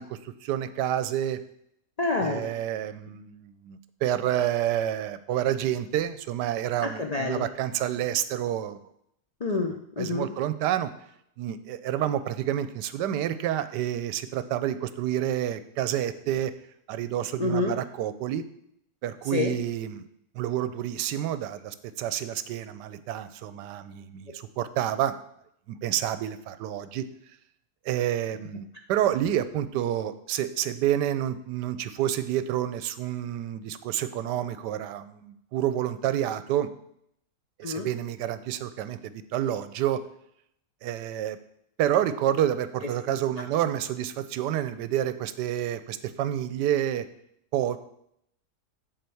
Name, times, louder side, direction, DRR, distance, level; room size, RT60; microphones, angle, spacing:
voice 1, 0.0-1.4 2.2-8.8 10.0-10.9 11.4-16.5 16.9-18.4 19.0-20.0 20.3-25.1 25.7-27.0 27.8-36.7 37.6-40.0 40.8-41.4 41.8-47.1 47.5-47.8, right 11 dB, 80° right, 12 dB, 1.2 m, -29 dB
voice 2, 2.0-2.5 6.8-7.5 9.4-10.3 17.4-17.7 19.3-19.5 37.6-37.9 43.4-43.5, left 3 dB, 65° left, 2 dB, 0.4 m, -28 dB
7.7 x 4.3 x 6.9 m, 0.74 s
omnidirectional pair, 1.8 m